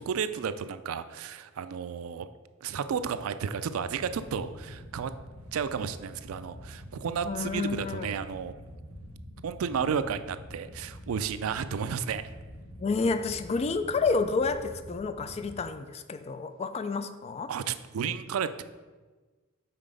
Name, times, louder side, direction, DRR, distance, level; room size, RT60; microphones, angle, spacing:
voice 1, 0.0-2.3 2.6-5.1 5.5-8.5 9.4-12.3 17.5-18.6, right 7 dB, 75° right, 12 dB, 0.4 m, -32 dB
sound 1, 3.8-15.6, equal, 75° left, 1.4 m, -46 dB
voice 2, 7.2-8.1 12.8-17.5, left 4 dB, 30° left, 10 dB, 0.3 m, -30 dB
5.8 x 4.1 x 5.0 m, 1.3 s
head